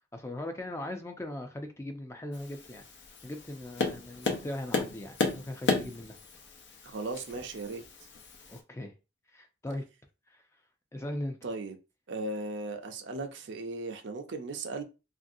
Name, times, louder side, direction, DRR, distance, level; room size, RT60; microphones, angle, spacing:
voice 1, 0.1-2.8 3.2-6.2 8.5-8.9 9.3-9.8 10.3-10.4 10.9-11.4, left 1 dB, 15° left, 0.4 m, -39 dB
Tap, 2.3-8.6, left 3 dB, 75° left, 0.7 m, -34 dB
voice 2, 6.8-7.8 11.4-11.8 12.1-14.8, right 2 dB, 80° right, 0.5 m, -37 dB
3.1 x 2.6 x 2.6 m
head